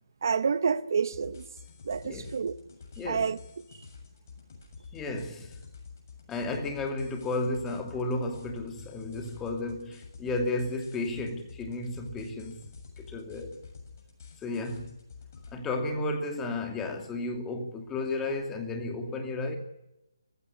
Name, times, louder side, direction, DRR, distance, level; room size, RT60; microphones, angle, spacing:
voice 1, 0.2-1.4 1.8-2.5 3.0-3.4, right 6 dB, 50° right, 0.9 m, -28 dB
sound 1, 1.1-15.5, left 5 dB, 40° left, 7.2 m, -49 dB
voice 2, 4.9-5.6 6.3-12.6 13.0-13.5 14.4-15.0 15.5-19.6, left 2 dB, 10° left, 2.6 m, -33 dB
29.5 x 16.0 x 9.7 m
figure-of-eight pair, 155°, 2 cm